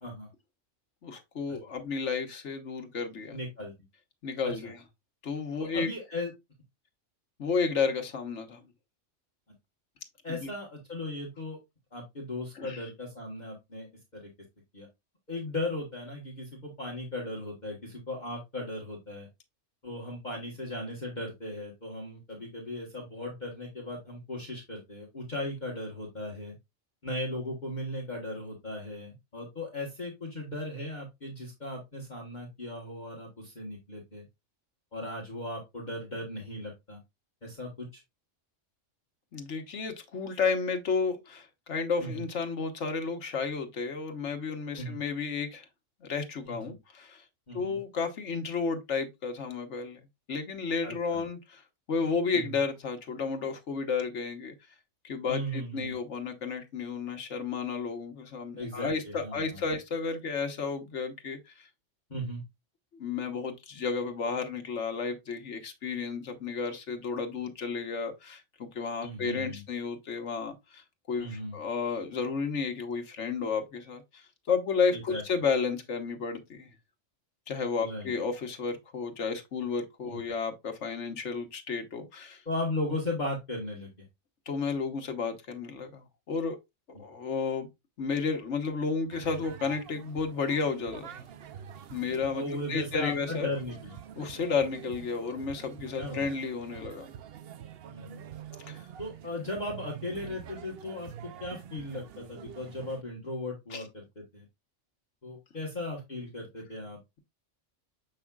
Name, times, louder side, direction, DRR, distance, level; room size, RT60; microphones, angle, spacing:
voice 1, 1.0-3.4 4.2-4.8 5.2-5.9 7.4-8.6 10.3-10.5 12.5-12.9 39.3-45.7 46.0-47.2 47.5-50.0 50.3-51.6 51.9-54.5 55.0-61.7 62.9-76.7 77.5-82.4 84.5-86.6 86.9-87.7 88.0-91.2 91.9-93.5 94.2-97.1 98.7-98.9 103.7-103.8, left 5 dB, 65° left, 1.4 m, -32 dB
voice 2, 3.3-3.7 4.4-4.7 5.6-6.3 10.2-11.6 11.9-13.9 14.1-14.3 14.7-14.9 15.3-19.3 19.8-26.5 27.0-34.2 34.9-37.0 37.4-38.0 42.0-42.2 44.8-45.0 46.5-46.7 47.5-47.8 50.8-51.2 52.3-52.6 55.3-55.9 58.6-59.6 62.1-62.4 69.0-69.6 71.2-71.6 74.9-75.2 77.8-78.1 80.1-80.2 82.4-83.9 92.0-93.9 96.0-96.2 97.8-98.2 99.0-104.4 105.2-107.0, left 1 dB, 35° left, 1.5 m, -37 dB
sound 1, 89.1-103.0, right 9 dB, 60° right, 0.7 m, -46 dB
7.2 x 5.6 x 2.3 m
omnidirectional pair, 1.3 m